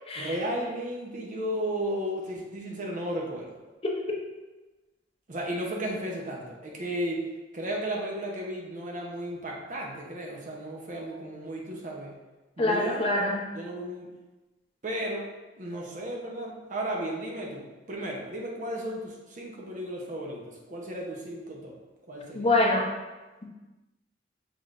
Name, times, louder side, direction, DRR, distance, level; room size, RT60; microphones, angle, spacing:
voice 1, 0.2-3.6 5.3-7.3 7.5-12.2 12.6-13.2 13.5-14.1 14.8-15.3 15.6-17.6 17.9-21.7 22.1-22.5, right 1 dB, 45° right, -1 dB, 0.8 m, -34 dB
voice 2, 12.6-13.4 22.3-22.8 23.4-23.5, left 2 dB, 30° left, -1 dB, 0.7 m, -25 dB
6.0 x 3.4 x 2.5 m, 1.2 s
head